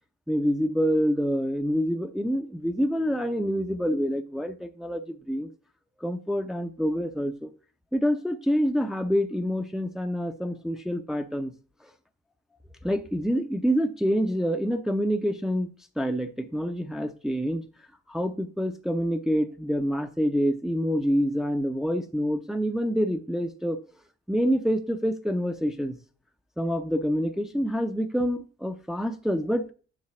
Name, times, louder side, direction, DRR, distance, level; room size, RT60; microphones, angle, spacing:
voice 1, 0.3-5.5 6.0-7.5 7.9-11.5 12.8-15.7 16.0-17.6 18.1-23.8 24.3-26.0 26.6-29.6, equal, ahead, 0.6 m, -27 dB
7.5 x 3.7 x 6.0 m
cardioid pair, 90°, 30 cm